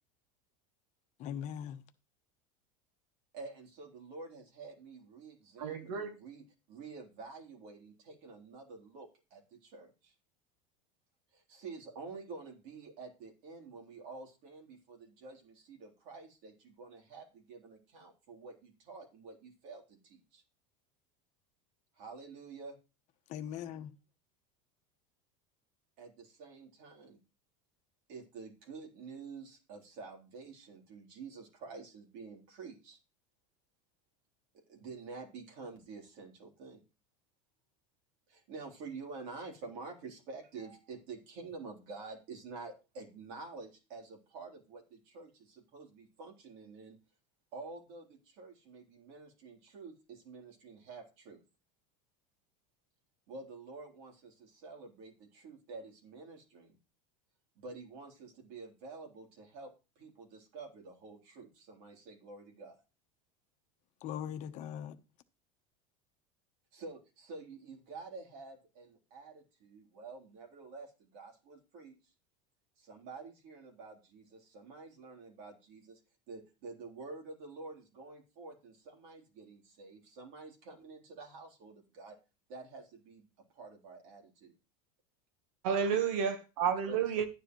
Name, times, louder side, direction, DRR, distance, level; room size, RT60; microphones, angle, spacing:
voice 1, 1.2-1.8 23.3-23.9 64.0-64.9, left 9 dB, 45° left, 1.0 m, -40 dB
voice 2, 3.3-10.1 11.3-20.4 22.0-22.8 26.0-27.2 28.1-33.0 34.7-36.8 38.3-47.0 47.5-51.4 53.3-56.8 57.6-62.8 66.7-72.1 72.8-76.0 76.3-82.2 82.5-83.3 83.5-84.5 86.9-87.1, right 4 dB, 60° right, 3.6 m, -49 dB
voice 3, 5.6-6.2 85.6-87.3, right 7 dB, 75° right, 1.4 m, -31 dB
11.5 x 9.9 x 3.2 m
supercardioid pair, 145°, 18 cm